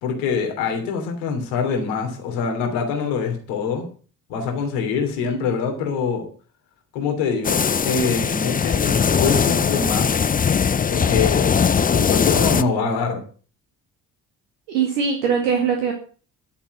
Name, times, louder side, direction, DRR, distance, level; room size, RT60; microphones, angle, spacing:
voice 1, 0.0-3.9 4.3-6.3 6.9-10.2 10.9-11.6 11.9-13.2, left 5 dB, 70° left, 3 dB, 3.2 m, -24 dB
sound 1, 7.4-12.6, left 6 dB, 20° left, 0.6 m, -20 dB
voice 2, 14.7-15.9, right 6 dB, 75° right, 2 dB, 2.1 m, -21 dB
12.5 x 7.1 x 7.8 m, 0.41 s
figure-of-eight pair, 45°, 48 cm